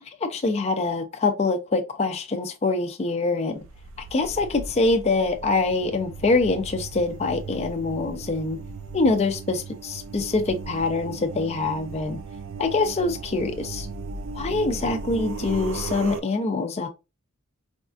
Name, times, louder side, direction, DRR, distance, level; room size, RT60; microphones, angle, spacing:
voice 1, 0.0-3.6 4.1-8.6 8.9-12.2 12.6-13.9 14.3-16.9, left 3 dB, 30° left, 0.4 m, -24 dB
sound 1, 3.6-16.2, right 4 dB, 60° right, 0.4 m, -37 dB
4.2 x 2.3 x 2.4 m
head